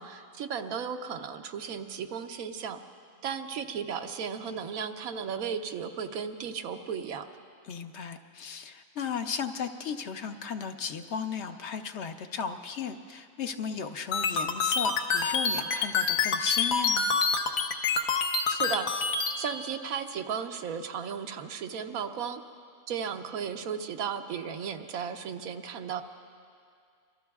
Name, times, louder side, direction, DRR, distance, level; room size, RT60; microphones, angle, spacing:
voice 1, 0.0-2.8 3.2-7.3 18.5-19.0 19.4-22.4 22.9-26.0, right 7 dB, 90° right, 7 dB, 1.2 m, -35 dB
voice 2, 7.6-17.1, left 6 dB, 60° left, 7 dB, 0.9 m, -35 dB
sound 1, 14.1-19.3, left 5 dB, 80° left, 1.3 m, -26 dB
26.0 x 23.0 x 2.4 m, 2.2 s
omnidirectional pair, 1.4 m